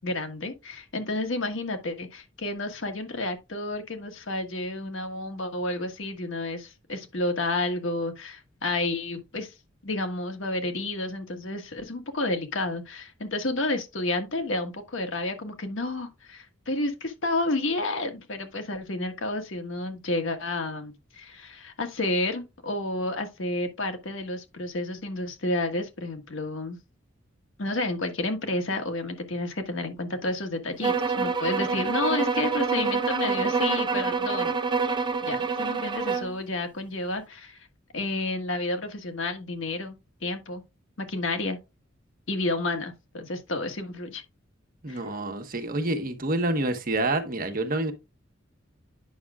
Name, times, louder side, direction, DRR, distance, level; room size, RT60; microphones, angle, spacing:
voice 1, 0.0-9.5 9.8-26.8 27.6-34.5 35.2-37.6 37.9-39.9 40.2-40.6 41.0-41.6 42.3-44.2 44.9-45.0, left 2 dB, 80° left, 1.5 m, -30 dB
sound 1, 30.8-36.3, right 4 dB, 25° right, 0.5 m, -26 dB
voice 2, 44.8-47.9, right 2 dB, 45° right, 1.3 m, -27 dB
9.2 x 6.0 x 2.4 m
head